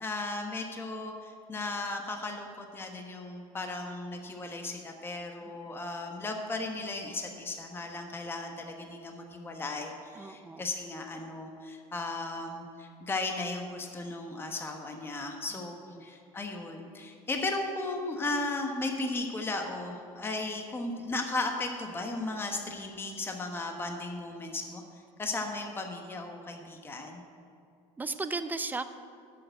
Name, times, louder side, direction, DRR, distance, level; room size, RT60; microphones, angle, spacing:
voice 1, 0.0-24.8 25.2-27.2, left 2 dB, 15° left, 3 dB, 1.1 m, -36 dB
voice 2, 5.4-5.8 10.1-10.7 15.5-16.1 28.0-28.9, right 3 dB, 10° right, 11 dB, 0.6 m, -37 dB
10.5 x 6.9 x 8.0 m, 2.4 s
cardioid pair, 125°, 14 cm